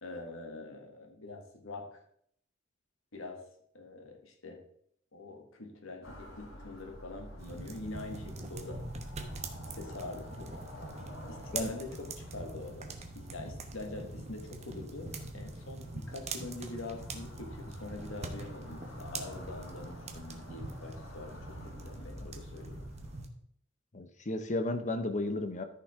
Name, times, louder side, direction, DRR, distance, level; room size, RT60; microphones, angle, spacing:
voice 1, 0.0-2.0 3.1-3.4 3.7-4.6 5.1-8.8 9.7-10.5 11.3-22.9, left 2 dB, 90° left, 3 dB, 1.7 m, -44 dB
sound 1, 6.0-23.2, equal, 70° left, 1.9 m, -50 dB
sound 2, 7.4-23.3, right 3 dB, 35° right, 1.0 m, -43 dB
voice 2, 23.9-25.6, left 2 dB, 40° left, 9 dB, 0.9 m, -33 dB
13.5 x 5.9 x 3.7 m, 0.68 s
head